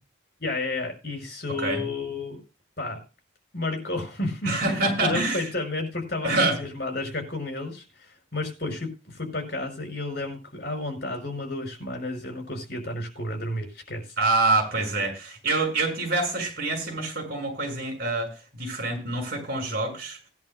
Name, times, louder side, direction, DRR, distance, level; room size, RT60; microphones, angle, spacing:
voice 1, 0.4-2.4 2.8-3.0 3.5-4.6 4.8-14.0, left 2 dB, 55° left, 4 dB, 5.5 m, -31 dB
voice 2, 4.4-5.5 6.2-6.6 14.2-20.2, right 2 dB, 50° right, 3 dB, 6.3 m, -26 dB
19.5 x 10.5 x 2.2 m, 0.31 s
head